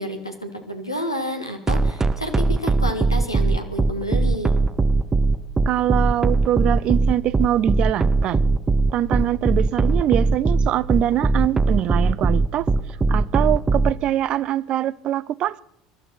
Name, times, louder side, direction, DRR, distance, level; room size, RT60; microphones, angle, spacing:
voice 1, 0.0-4.5, equal, 90° left, 1.5 m, -30 dB
sound 1, 1.7-13.9, right 3 dB, 20° right, 0.8 m, -19 dB
voice 2, 5.7-8.4 8.9-12.7 13.1-15.6, right 12 dB, 45° right, 0.5 m, -23 dB
23.5 x 12.5 x 4.4 m
figure-of-eight pair, 70°, 2 cm